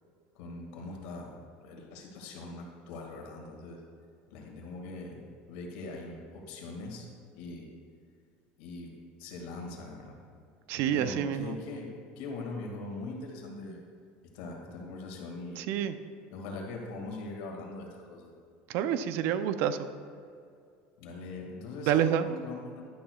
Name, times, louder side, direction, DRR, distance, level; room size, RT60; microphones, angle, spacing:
voice 1, 0.4-1.3 1.6-3.8 4.3-7.1 7.3-7.7 8.6-8.9 9.2-10.2 10.8-11.9 12.2-13.8 14.3-15.6 16.3-18.3 21.0-22.9, left 3 dB, 75° left, 0 dB, 2.1 m, -41 dB
voice 2, 10.7-11.6 15.6-15.9 18.7-19.9 21.9-22.3, right 9 dB, 60° right, 11 dB, 0.5 m, -28 dB
11.5 x 11.0 x 2.4 m, 2.3 s
supercardioid pair, 140°, 4 cm